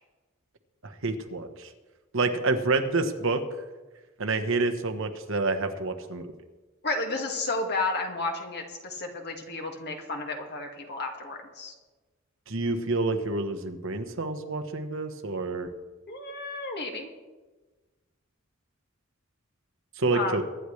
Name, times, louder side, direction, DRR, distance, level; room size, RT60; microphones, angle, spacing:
voice 1, 0.8-1.7 2.1-3.4 4.2-6.3 12.5-15.7 20.0-20.4, right 3 dB, 70° right, 7 dB, 1.2 m, -28 dB
voice 2, 6.8-11.7 16.1-17.1 20.1-20.4, left 3 dB, 55° left, 2 dB, 2.0 m, -32 dB
23.5 x 10.0 x 3.3 m, 1.2 s
head